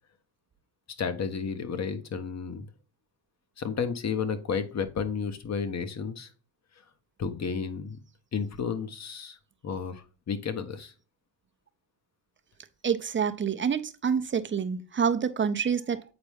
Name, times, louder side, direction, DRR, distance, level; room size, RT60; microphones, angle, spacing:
voice 1, 1.0-2.6 3.6-6.3 7.2-8.0 8.3-9.4 9.6-10.9, left 6 dB, 35° left, 1.2 m, -32 dB
voice 2, 12.8-16.0, right 7 dB, 25° right, 0.8 m, -27 dB
8.1 x 4.4 x 3.5 m
supercardioid pair, 85°, 47 cm